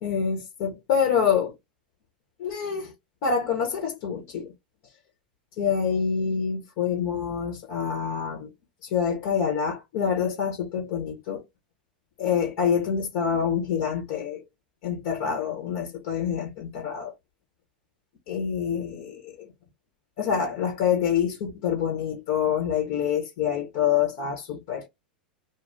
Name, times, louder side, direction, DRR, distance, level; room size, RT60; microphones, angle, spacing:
voice 1, 0.0-1.5 2.4-2.9 3.2-4.5 5.6-8.5 8.8-11.4 12.2-14.4 14.8-17.1 18.3-19.3 20.2-24.9, left 7 dB, 55° left, 1.2 m, -26 dB
2.5 x 2.3 x 3.5 m
hypercardioid pair, 90°, 5 cm